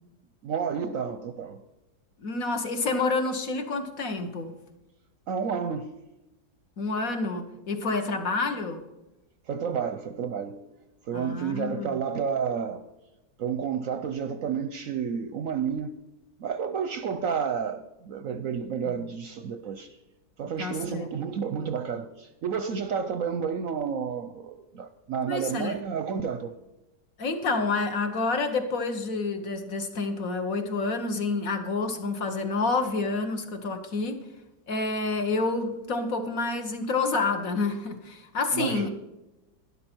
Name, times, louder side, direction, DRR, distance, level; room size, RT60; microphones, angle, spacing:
voice 1, 0.4-1.6 5.3-5.9 9.5-10.6 11.1-12.8 13.4-15.9 16.4-19.9 20.4-26.5 38.5-38.9, right 6 dB, 65° right, 0.9 m, -30 dB
voice 2, 2.2-4.5 6.8-8.8 11.1-12.0 20.6-21.1 25.3-25.8 27.2-34.2 34.7-38.9, left 3 dB, 55° left, 1.6 m, -28 dB
12.0 x 11.0 x 4.5 m
omnidirectional pair, 1.8 m